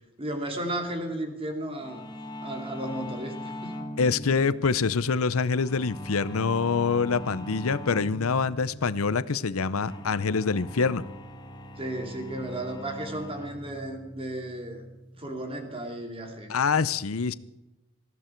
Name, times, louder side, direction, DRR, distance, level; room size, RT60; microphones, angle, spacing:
voice 1, 0.2-2.1 2.4-3.7 11.8-14.8 15.1-16.9, right 1 dB, 25° right, 4 dB, 2.7 m, -34 dB
sound 1, 1.8-16.3, equal, 20° left, 1.8 m, -41 dB
voice 2, 4.0-11.0 16.5-17.3, left 5 dB, 90° left, 16 dB, 0.7 m, -25 dB
20.0 x 15.0 x 4.5 m, 1.0 s
head